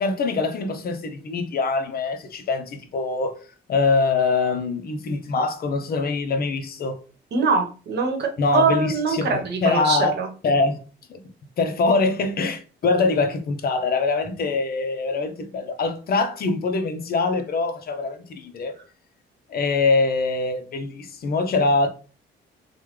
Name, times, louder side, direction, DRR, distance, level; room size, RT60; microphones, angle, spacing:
voice 1, 0.0-3.4 3.7-7.0 8.4-10.2 10.4-10.8 11.1-11.2 11.6-18.8 19.5-21.9, left 3 dB, 50° left, 0.6 m, -23 dB
voice 2, 7.3-10.3, right 4 dB, 60° right, 1.0 m, -23 dB
3.2 x 2.2 x 3.1 m
cardioid pair, 90°, 20 cm